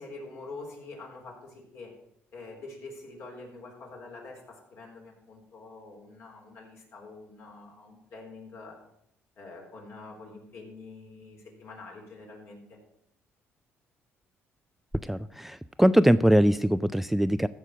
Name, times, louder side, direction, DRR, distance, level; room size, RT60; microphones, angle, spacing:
voice 1, 0.0-2.0 2.3-8.8 9.4-12.8, left 3 dB, 60° left, 0 dB, 3.9 m, -45 dB
voice 2, 15.0-17.5, equal, 5° right, 14 dB, 0.3 m, -22 dB
14.5 x 4.8 x 7.4 m, 0.75 s
cardioid pair, 100°, 5 cm